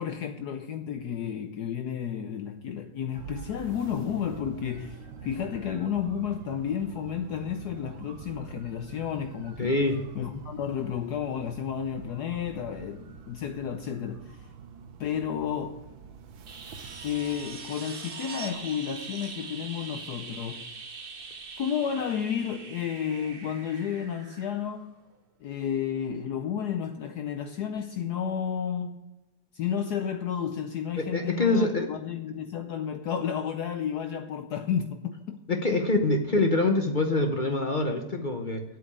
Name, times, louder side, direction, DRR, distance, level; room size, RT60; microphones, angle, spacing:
voice 1, 0.0-9.7 10.2-14.5 15.0-15.8 17.0-20.7 21.6-25.0 25.4-29.0 29.5-36.1, left 8 dB, 70° left, 1.1 m, -32 dB
sound 1, 3.2-17.6, right 5 dB, 80° right, 1.7 m, -46 dB
voice 2, 9.6-10.0 31.0-31.9 35.5-38.6, left 2 dB, 40° left, 0.7 m, -25 dB
sound 2, 16.5-25.1 27.5-27.6, right 4 dB, 35° right, 1.0 m, -42 dB
8.4 x 7.6 x 8.5 m
omnidirectional pair, 2.1 m